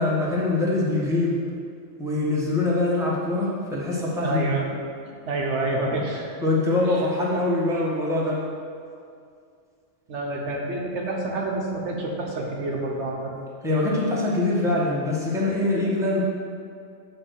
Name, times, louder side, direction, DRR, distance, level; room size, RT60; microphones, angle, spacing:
voice 1, 0.0-1.4 2.0-4.4 6.4-8.4 13.6-16.2, left 2 dB, 5° right, -6 dB, 1.3 m, -23 dB
voice 2, 4.2-4.7 5.1-6.3 6.8-7.0 10.1-13.3, right 2 dB, 75° right, 0 dB, 1.2 m, -28 dB
8.7 x 3.2 x 6.4 m, 2.3 s
omnidirectional pair, 1.2 m